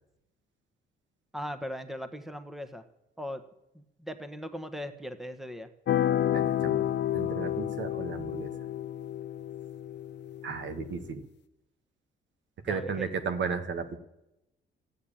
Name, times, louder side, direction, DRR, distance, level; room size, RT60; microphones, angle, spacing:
voice 1, 1.3-2.8 3.2-3.4 3.7-5.7 12.7-13.2, equal, ahead, 10 dB, 1.2 m, -39 dB
sound 1, 5.9-11.1, left 11 dB, 60° left, 0.6 m, -30 dB
voice 2, 6.3-8.5 10.4-11.2 12.6-14.0, right 5 dB, 65° right, 9 dB, 1.7 m, -34 dB
13.5 x 9.4 x 8.8 m, 0.90 s
cardioid pair, 90°, 20 cm